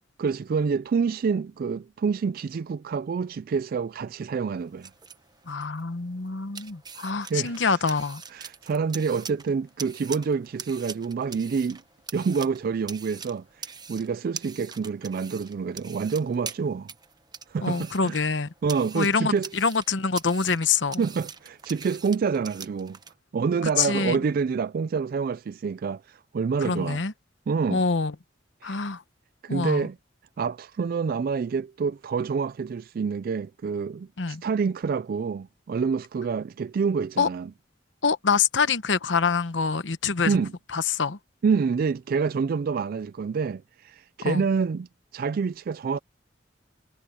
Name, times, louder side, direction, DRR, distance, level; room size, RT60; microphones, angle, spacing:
voice 1, 0.2-4.9 7.0-7.7 8.3-11.8 12.1-16.9 17.5-18.2 18.6-19.5 21.0-23.0 23.3-27.0 27.5-27.8 28.6-28.9 29.4-30.0 30.4-37.5 40.2-40.5 41.4-46.0, right 5 dB, 50° right, 0.3 m, -27 dB
sound 1, 4.6-23.1, right 6 dB, 25° right, 1.0 m, -43 dB
voice 2, 5.5-8.2 17.6-18.5 18.9-21.0 23.8-24.2 26.6-27.1 27.7-28.1 28.6-29.0 29.5-29.9 34.2-34.4 37.2-37.3 38.0-40.4 40.7-41.2 44.2-44.4, left 5 dB, 80° left, 1.0 m, -25 dB
head